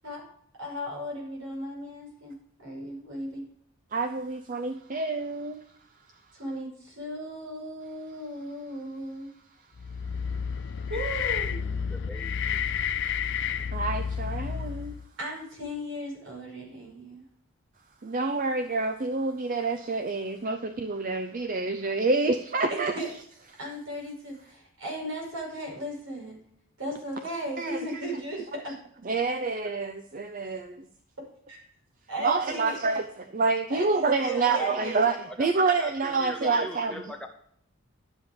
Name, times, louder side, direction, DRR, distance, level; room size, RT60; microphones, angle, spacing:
voice 1, 0.6-3.4 6.3-9.3 10.9-11.7 15.2-17.2 22.7-23.1 23.6-26.4 26.8-28.8 31.5-31.6 32.1-32.8 33.7-35.0, equal, 70° right, -1 dB, 5.5 m, -36 dB
voice 2, 3.9-5.6 13.7-15.0 18.0-23.0 27.6-28.0 29.0-30.9 32.2-37.0, right 3 dB, 40° right, 9 dB, 0.5 m, -28 dB
sound 1, 9.8-15.1, left 7 dB, 55° left, 0.5 m, -31 dB
voice 3, 11.9-12.6 34.2-35.5 35.8-37.3, equal, 5° left, 4 dB, 0.8 m, -41 dB
12.0 x 7.3 x 5.1 m, 0.66 s
head